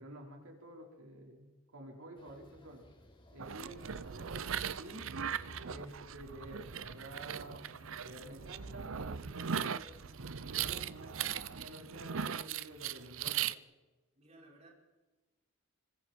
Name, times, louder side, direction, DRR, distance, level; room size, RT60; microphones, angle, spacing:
voice 1, 0.0-2.8 3.3-5.1 5.7-7.7 8.0-9.9 10.5-13.6, right 1 dB, 85° right, 0 dB, 5.0 m, -50 dB
sound 1, 2.2-11.7, equal, 25° left, 3.2 m, -58 dB
sound 2, 3.4-13.5, right 8 dB, 65° right, 0.7 m, -39 dB
voice 2, 14.2-14.7, right 2 dB, 30° right, -2 dB, 5.6 m, -61 dB
27.0 x 25.5 x 4.7 m, 1.2 s
head